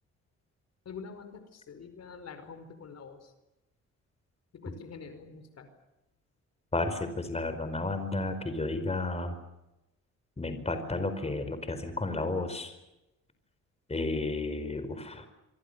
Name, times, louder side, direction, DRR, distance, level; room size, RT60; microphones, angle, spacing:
voice 1, 0.8-3.3 4.5-5.7, left 5 dB, 55° left, 9 dB, 5.0 m, -46 dB
voice 2, 6.7-9.3 10.4-12.7 13.9-15.3, left 2 dB, 20° left, 9 dB, 5.0 m, -32 dB
26.5 x 25.0 x 6.9 m, 0.93 s
cardioid pair, 90°, 30 cm